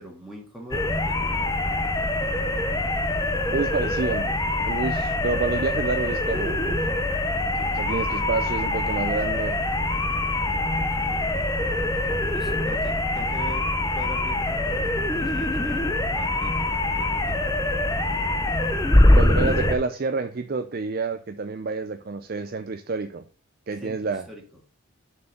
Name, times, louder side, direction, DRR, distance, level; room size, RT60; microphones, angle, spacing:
voice 1, 0.0-1.5 7.4-7.8 11.0-11.3 12.3-17.5 23.8-24.4, right 1 dB, ahead, 1.8 m, -43 dB
sound 1, 0.7-19.8, left 1 dB, 15° left, 0.8 m, -24 dB
voice 2, 3.5-4.4 4.6-6.9 7.7-9.6 19.1-23.2 23.7-24.3, right 4 dB, 45° right, 0.5 m, -28 dB
6.6 x 4.7 x 6.7 m
head